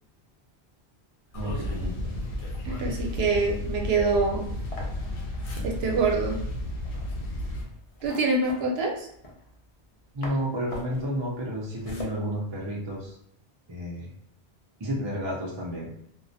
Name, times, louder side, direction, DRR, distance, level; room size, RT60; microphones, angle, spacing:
sound 1, 1.3-7.6, left 1 dB, 75° left, 0.8 m, -33 dB
sound 2, 1.3-9.9 10.2-13.1, left 1 dB, 50° left, 0.4 m, -43 dB
voice 1, 1.3-2.1 10.1-13.2 13.7-14.1 14.8-15.9, equal, 40° right, -4 dB, 0.4 m, -31 dB
voice 2, 2.6-4.5 5.6-6.4 8.0-9.1, right 4 dB, 70° right, 0 dB, 0.8 m, -25 dB
2.2 x 2.1 x 2.6 m, 0.73 s
omnidirectional pair, 1.1 m